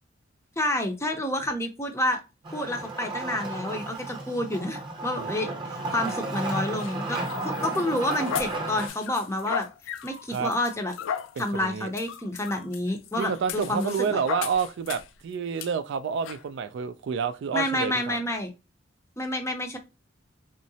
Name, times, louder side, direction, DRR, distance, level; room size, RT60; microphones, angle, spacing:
voice 1, 0.6-2.2 2.5-9.7 10.0-10.9 11.4-14.2 17.5-18.5 19.2-19.8, left 1 dB, 15° left, 0.5 m, -29 dB
Wood, 2.4-8.9, right 2 dB, 25° right, 0.7 m, -33 dB
voice 2, 5.2-6.1 10.3-10.5 11.4-11.9 13.2-18.2, right 6 dB, 60° right, 0.3 m, -29 dB
sound 1, 6.5-15.2 15.6-15.7 16.2-16.4, left 8 dB, 70° left, 0.3 m, -36 dB
3.7 x 2.0 x 2.7 m
head